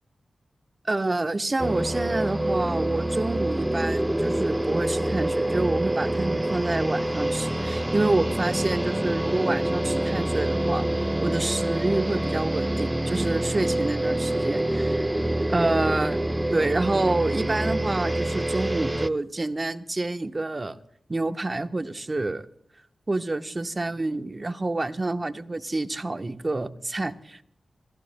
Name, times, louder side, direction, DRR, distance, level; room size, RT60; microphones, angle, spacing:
voice 1, 0.8-10.9 11.2-15.0 15.5-16.2 16.5-20.8 21.1-22.5 23.1-27.4, right 2 dB, 35° right, 9 dB, 1.0 m, -28 dB
sound 1, 1.6-19.1, right 1 dB, 15° right, 0.6 m, -26 dB
26.0 x 16.5 x 2.2 m, 0.69 s
cardioid pair, 45°, 0 cm